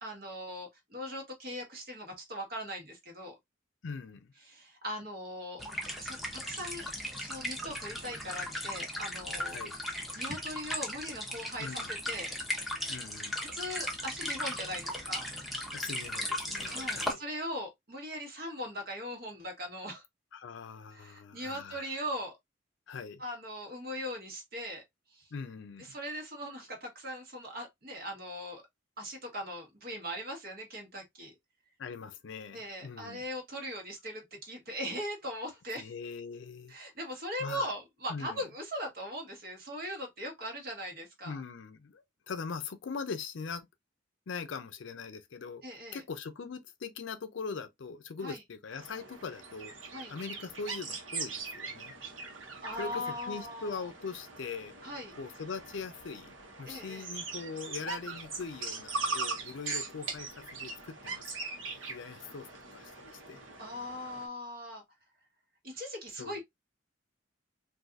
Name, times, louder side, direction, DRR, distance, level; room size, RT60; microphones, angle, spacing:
voice 1, 0.0-3.3 4.4-5.6 6.0-6.9 7.2-9.6 10.1-12.3 13.4-15.3 16.6-20.0 20.9-22.4 23.2-24.8 25.1-25.3 25.8-28.6 29.0-31.3 32.5-35.9 36.7-41.4 45.6-46.0 48.2-48.4 49.9-50.1 52.6-53.9 54.8-55.1 56.7-57.1 59.6-59.8 63.6-64.8 65.6-66.4, equal, 50° right, 1.3 m, -40 dB
voice 2, 3.8-4.3 9.5-9.7 11.6-12.0 12.9-13.4 15.7-17.2 20.3-21.9 22.9-23.2 25.3-25.9 31.8-33.2 35.7-36.8 37.4-37.7 38.1-38.4 41.2-43.7 44.3-45.6 45.9-49.7 50.1-51.9 52.8-54.7 55.2-63.4 66.2-66.4, left 5 dB, 70° left, 0.5 m, -41 dB
sound 1, 5.6-17.1, left 1 dB, ahead, 0.8 m, -37 dB
sound 2, 48.7-64.3, right 4 dB, 85° right, 1.1 m, -41 dB
3.9 x 2.6 x 2.4 m
head